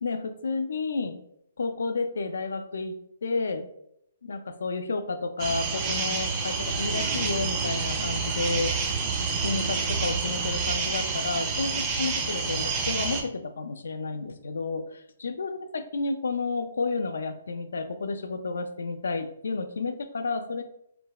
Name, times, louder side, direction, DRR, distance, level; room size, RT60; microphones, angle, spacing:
voice 1, 0.0-1.2 1.6-3.0 3.2-3.7 4.2-8.7 9.4-20.6, left 3 dB, 85° left, 8 dB, 0.3 m, -31 dB
sound 1, 5.4-13.2, right 4 dB, 25° right, 0.4 m, -28 dB
3.1 x 2.1 x 2.3 m, 0.75 s
hypercardioid pair, 155°, 0 cm